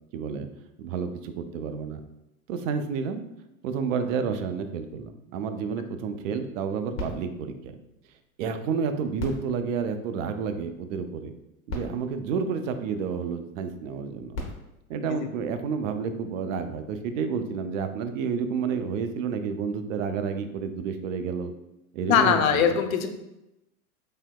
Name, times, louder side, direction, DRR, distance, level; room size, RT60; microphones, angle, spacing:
voice 1, 0.1-0.5 0.8-2.0 2.5-3.2 3.6-7.8 8.4-11.3 11.7-14.4 14.9-21.5 21.9-22.8, right 6 dB, 60° right, 8 dB, 0.5 m, -30 dB
sound 1, 6.9-8.6 9.1-10.7 11.4-11.5 11.7-13.3 14.1-15.9 16.6-16.7, left 2 dB, 35° left, 1.0 m, -41 dB
voice 2, 22.1-23.1, left 8 dB, 70° left, 7 dB, 0.5 m, -21 dB
3.3 x 2.7 x 2.2 m, 0.91 s
hypercardioid pair, 95°, 44 cm